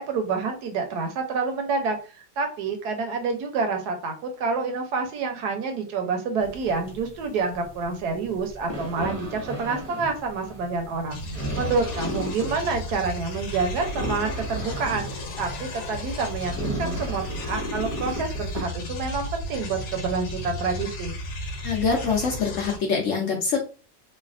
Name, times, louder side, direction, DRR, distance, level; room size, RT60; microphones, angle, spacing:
voice 1, 0.0-11.2 11.6-21.1, right 4 dB, 80° right, 4 dB, 1.2 m, -28 dB
sound 1, 6.4-18.6, left 1 dB, 30° right, 0.6 m, -36 dB
sound 2, 11.1-22.8, equal, 85° left, 1.3 m, -34 dB
voice 2, 21.6-23.6, left 5 dB, 65° left, 0 dB, 0.8 m, -24 dB
3.2 x 2.2 x 2.4 m, 0.35 s
omnidirectional pair, 1.8 m